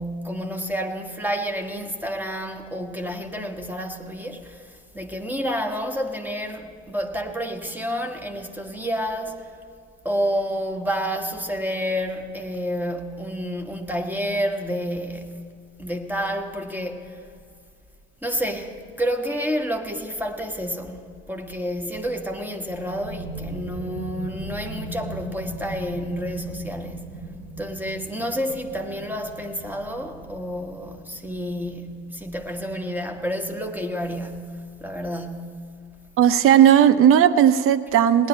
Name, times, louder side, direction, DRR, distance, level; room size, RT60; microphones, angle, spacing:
voice 1, 0.0-9.5 10.0-15.4 15.8-17.2 18.2-27.2 27.6-35.6, equal, 5° right, 1.4 m, -29 dB
sound 1, 22.6-33.9, right 1 dB, 85° right, 2.3 m, -39 dB
voice 2, 36.2-38.3, right 9 dB, 40° right, 0.7 m, -15 dB
18.5 x 10.0 x 4.3 m
figure-of-eight pair, 55°, 34 cm